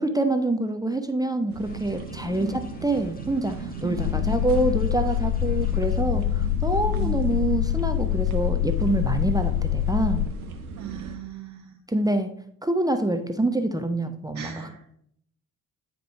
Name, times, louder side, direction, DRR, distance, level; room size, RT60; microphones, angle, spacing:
voice 1, 0.0-10.3 11.9-12.3 12.6-14.7, right 2 dB, 10° right, 7 dB, 0.7 m, -26 dB
sound 1, 1.5-11.2, right 5 dB, 85° right, 0.7 m, -37 dB
sound 2, 1.6-6.0, left 1 dB, 20° left, 1.5 m, -48 dB
voice 2, 2.4-2.7 3.8-4.8 6.9-7.3 10.8-11.8 14.3-14.9, right 8 dB, 45° right, 0 dB, 1.1 m, -37 dB
sound 3, 4.0-10.3, left 14 dB, 75° left, 0.7 m, -25 dB
9.4 x 5.0 x 3.4 m, 0.67 s
figure-of-eight pair, 40°, 42 cm